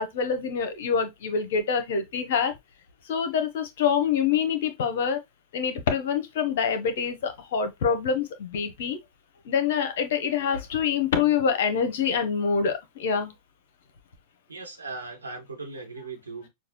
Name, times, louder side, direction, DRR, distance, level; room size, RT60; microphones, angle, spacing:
voice 1, 0.0-2.5 3.1-5.2 5.5-9.0 9.4-13.3, left 6 dB, 55° left, 0.9 m, -26 dB
voice 2, 14.5-16.5, right 3 dB, 80° right, 1.4 m, -38 dB
6.3 x 2.4 x 2.9 m
figure-of-eight pair, 90°, 0 cm